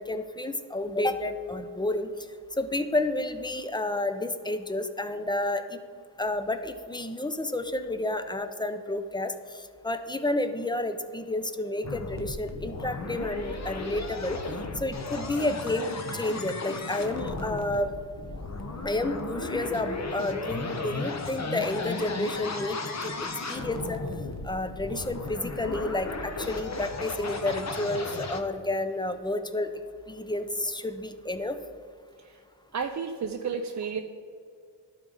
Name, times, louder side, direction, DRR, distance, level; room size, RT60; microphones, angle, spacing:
voice 1, 0.0-2.1 2.6-5.8 6.2-14.4 14.8-18.0 18.8-24.0 24.4-29.7 30.1-31.6, left 2 dB, 10° left, 9 dB, 0.5 m, -30 dB
sound 1, 11.8-28.4, left 3 dB, 35° left, 0.9 m, -35 dB
voice 2, 32.7-34.0, right 6 dB, 40° right, 4 dB, 0.5 m, -32 dB
12.0 x 4.0 x 3.8 m, 2.2 s
cardioid pair, 65°, 45 cm